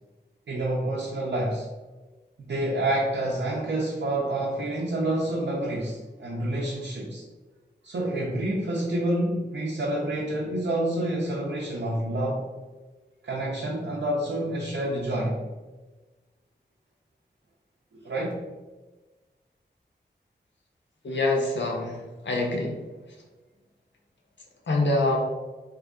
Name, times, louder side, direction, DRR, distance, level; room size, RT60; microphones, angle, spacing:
voice 1, 0.5-1.7 2.5-7.2 7.8-12.4 13.2-15.4 18.0-18.3, right 1 dB, 80° right, -3 dB, 0.5 m, -28 dB
voice 2, 21.0-22.8 24.7-25.2, left 2 dB, 80° left, 0 dB, 0.7 m, -25 dB
3.0 x 2.4 x 3.6 m, 1.2 s
wide cardioid pair, 80°, 18 cm